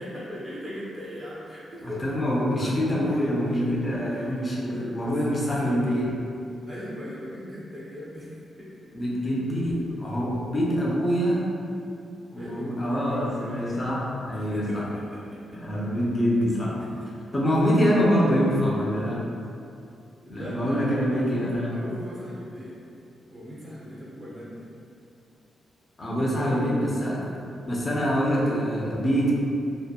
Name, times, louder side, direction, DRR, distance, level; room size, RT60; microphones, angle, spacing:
voice 1, 0.0-2.0 3.1-3.3 3.6-3.7 4.1-4.4 4.6-5.9 6.7-8.7 12.4-13.8 14.4-15.4 16.9-17.0 20.2-22.8 23.3-24.7 26.2-26.9, left 1 dB, 30° right, -8 dB, 0.6 m, -39 dB
voice 2, 1.8-6.1 8.9-11.5 12.3-14.9 15.6-16.8 17.3-19.3 20.3-21.7 26.0-27.3 27.6-29.3, equal, 25° left, -5 dB, 0.5 m, -25 dB
2.7 x 2.1 x 2.3 m, 2.6 s
cardioid pair, 105°, 0 cm